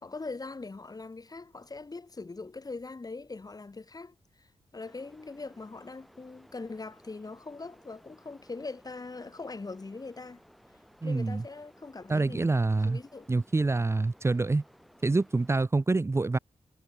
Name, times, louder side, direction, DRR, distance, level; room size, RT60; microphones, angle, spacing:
voice 1, 0.0-10.4 11.0-12.6 12.8-13.3, left 3 dB, 35° left, 4.8 m, -42 dB
sound 1, 4.8-15.7, equal, ahead, 5.7 m, -59 dB
voice 2, 11.0-11.4 12.1-13.0 13.3-14.6 15.0-16.4, right 3 dB, 25° right, 0.7 m, -26 dB
cardioid pair, 65°, 11 cm